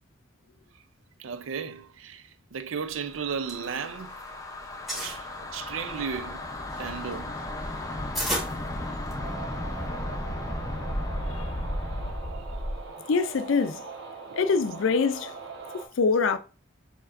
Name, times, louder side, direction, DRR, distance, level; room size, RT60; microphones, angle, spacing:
voice 1, 1.2-4.1 4.9-5.3 5.5-6.4 6.8-7.3, right 6 dB, 85° right, 0.5 m, -34 dB
sound 1, 3.1-12.9, left 1 dB, 15° left, 0.6 m, -34 dB
sound 2, 3.1-4.3 4.6-5.2 5.8-9.4, equal, ahead, 1.5 m, -34 dB
sound 3, 9.2-15.9, right 4 dB, 65° right, 1.1 m, -42 dB
voice 2, 13.1-13.8 14.3-15.3 16.0-16.4, left 4 dB, 80° left, 0.4 m, -24 dB
6.4 x 2.9 x 2.5 m
head